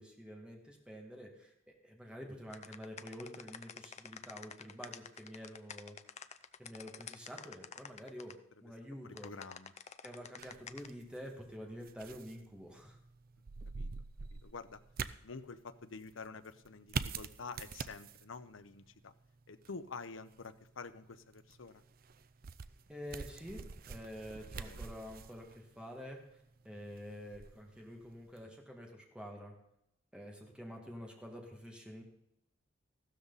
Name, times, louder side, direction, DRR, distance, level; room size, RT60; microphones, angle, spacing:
voice 1, 0.0-6.0 6.6-9.3 10.0-13.0 22.9-23.6 23.9-29.5 30.1-32.0, equal, 5° right, 0 dB, 2.0 m, -48 dB
sound 1, 2.5-8.3 9.1-10.9, left 7 dB, 35° left, 0.5 m, -48 dB
voice 2, 9.0-9.7 13.8-13.9 14.4-14.8 15.2-19.1 19.5-21.8 24.6-24.8, left 4 dB, 75° left, 11 dB, 0.8 m, -48 dB
sound 2, 10.4-28.5, right 5 dB, 45° right, 0.5 m, -47 dB
15.0 x 12.5 x 4.1 m, 0.80 s
head